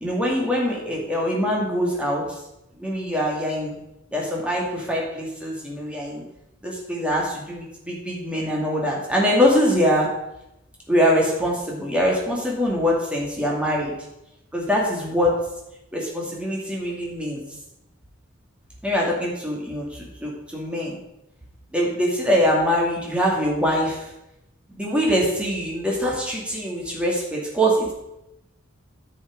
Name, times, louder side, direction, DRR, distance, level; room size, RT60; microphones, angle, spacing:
voice 1, 0.0-2.2 2.8-3.7 4.1-6.2 6.6-10.1 10.9-13.9 14.5-15.4 15.9-17.4 18.8-21.0 21.7-24.0 24.7-27.9, equal, 5° right, -3 dB, 2.3 m, -23 dB
10.0 x 6.4 x 4.7 m, 0.88 s
head